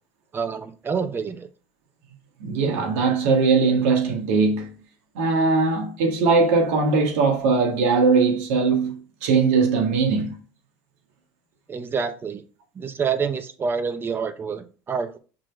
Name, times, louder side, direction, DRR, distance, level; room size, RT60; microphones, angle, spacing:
voice 1, 0.3-1.5 11.7-12.4 12.8-15.2, right 6 dB, 30° right, 0.8 m, -27 dB
voice 2, 2.4-4.7 5.2-10.4, right 4 dB, 80° right, 1.7 m, -20 dB
6.0 x 3.1 x 5.1 m
supercardioid pair, 105°, 8 cm